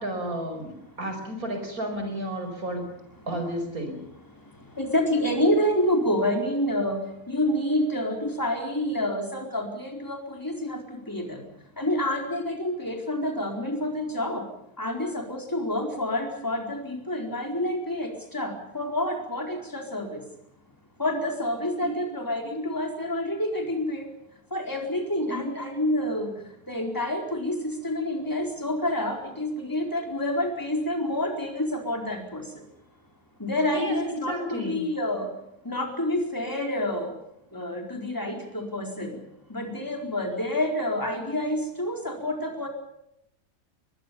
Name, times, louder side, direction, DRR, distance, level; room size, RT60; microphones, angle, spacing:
voice 1, 0.0-2.9 3.3-4.0 21.8-21.9 25.3-25.4 33.7-34.0 34.3-34.8, equal, 85° right, 5 dB, 5.6 m, -32 dB
voice 2, 4.8-7.0 7.3-11.4 11.8-14.4 14.8-20.1 21.0-24.0 24.5-26.3 26.7-32.4 33.4-35.3 35.7-37.1 37.5-39.1 39.5-42.7, left 1 dB, 15° left, 2 dB, 4.4 m, -28 dB
22.5 x 22.0 x 7.0 m, 0.78 s
omnidirectional pair, 1.5 m